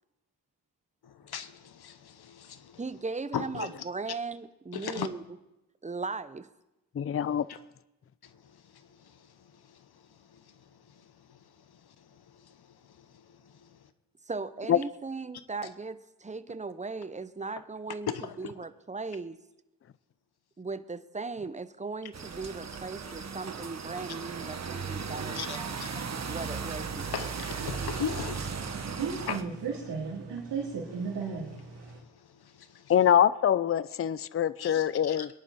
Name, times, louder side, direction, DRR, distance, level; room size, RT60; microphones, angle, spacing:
voice 1, 1.0-2.8 3.3-3.8 4.7-5.1 7.5-7.6 8.2-13.9 15.6-15.7 18.1-18.5 25.3-26.4 27.1-29.5 30.0-30.2 30.6-32.9 34.6-35.3, left 8 dB, 65° left, 1.1 m, -41 dB
voice 2, 2.8-5.2 5.8-6.5 14.3-18.1 18.4-19.4 20.6-25.7 26.3-27.3, right 4 dB, 15° right, 0.7 m, -38 dB
voice 3, 7.0-7.5 14.7-14.8 32.9-35.3, left 9 dB, 35° left, 0.5 m, -24 dB
sound 1, 22.1-29.4, right 5 dB, 40° right, 1.2 m, -36 dB
sound 2, 25.9-32.0, right 5 dB, 85° right, 3.2 m, -37 dB
21.5 x 11.0 x 4.2 m
cardioid pair, 70°, 41 cm